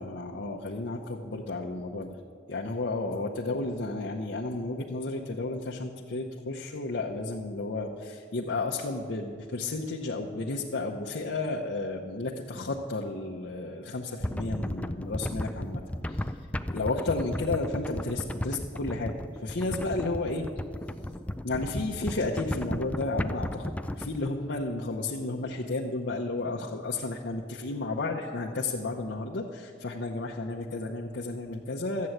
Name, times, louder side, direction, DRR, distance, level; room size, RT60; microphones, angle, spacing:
voice 1, 0.0-2.2 2.5-16.5 16.7-20.4 20.9-21.1 21.4-32.1, left 2 dB, 75° left, -2 dB, 0.8 m, -32 dB
sound 1, 14.2-24.3, left 1 dB, 5° left, 0.3 m, -34 dB
12.5 x 8.4 x 7.8 m, 2.3 s
head